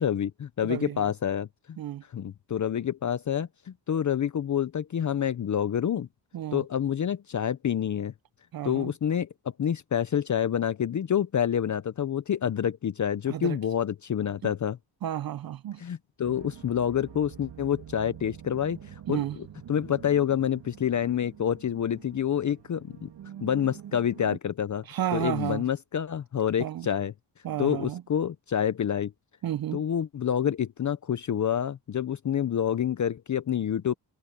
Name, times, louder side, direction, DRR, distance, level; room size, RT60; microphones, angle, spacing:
voice 1, 0.0-1.8 2.1-6.1 6.5-8.1 8.6-9.3 9.6-14.8 15.8-19.3 19.7-23.1 23.4-24.8 25.1-27.1 27.6-29.1 29.7-33.9, left 9 dB, 40° left, 0.6 m, -28 dB
voice 2, 0.6-1.1 1.8-2.0 6.3-6.6 8.5-8.9 13.3-13.6 14.4-14.5 15.0-15.8 19.1-19.4 24.8-25.7 26.6-26.9 27.4-28.0 29.4-29.9, right 11 dB, 55° right, 0.5 m, -32 dB
sound 1, 16.2-24.4, right 10 dB, 70° right, 2.2 m, -46 dB
wide cardioid pair, 115°, 44 cm